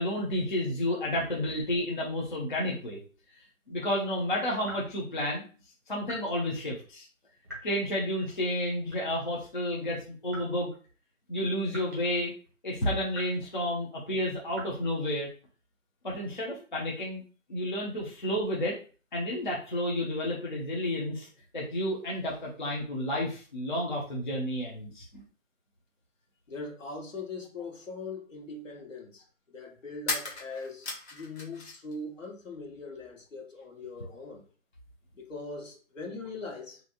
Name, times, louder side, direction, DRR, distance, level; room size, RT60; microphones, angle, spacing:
voice 1, 0.0-3.0 3.7-5.5 5.9-7.1 7.6-10.7 11.3-12.3 12.6-15.3 16.0-17.2 17.5-18.8 19.1-21.3 21.5-25.2, left 1 dB, 35° left, -3 dB, 0.6 m, -31 dB
sound 1, 4.6-4.9 6.0-6.3 7.4-7.8 8.9-9.3 10.3-10.6 11.7-12.1 12.4-12.5 13.1-13.5 14.5-14.6, right 1 dB, 15° right, 0.8 m, -45 dB
voice 2, 26.5-34.4 35.1-36.8, left 3 dB, 70° left, 0 dB, 1.4 m, -41 dB
sound 2, 30.0-31.9 32.2-33.1, left 3 dB, 50° left, 1.1 m, -37 dB
2.9 x 2.6 x 2.4 m, 0.39 s
figure-of-eight pair, 165°, 41 cm